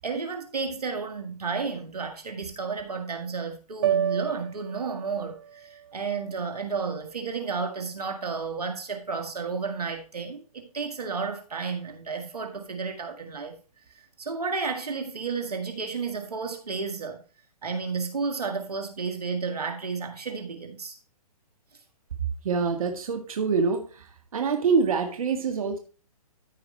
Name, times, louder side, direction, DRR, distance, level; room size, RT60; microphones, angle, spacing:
voice 1, 0.0-13.5 14.0-17.2 17.6-21.0, right 5 dB, 90° right, 1.9 m, -32 dB
sound 1, 3.8-8.1, right 9 dB, 45° right, 0.5 m, -33 dB
voice 2, 22.4-24.0 24.3-25.8, right 5 dB, 65° right, 1.7 m, -25 dB
14.0 x 4.9 x 3.2 m
hypercardioid pair, 140°, 19 cm